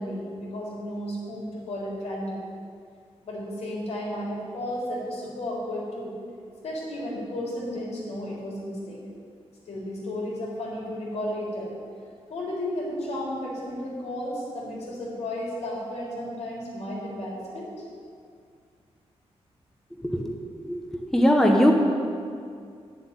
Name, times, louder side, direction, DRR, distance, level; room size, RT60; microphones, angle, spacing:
voice 1, 0.0-2.4 3.2-6.1 6.6-9.0 9.7-11.7 12.3-17.7, left 1 dB, 80° left, -4 dB, 3.6 m, -33 dB
voice 2, 20.0-20.3 20.6-21.7, equal, 5° left, 1 dB, 0.9 m, -21 dB
10.0 x 7.4 x 8.8 m, 2.3 s
wide cardioid pair, 175°, 11 cm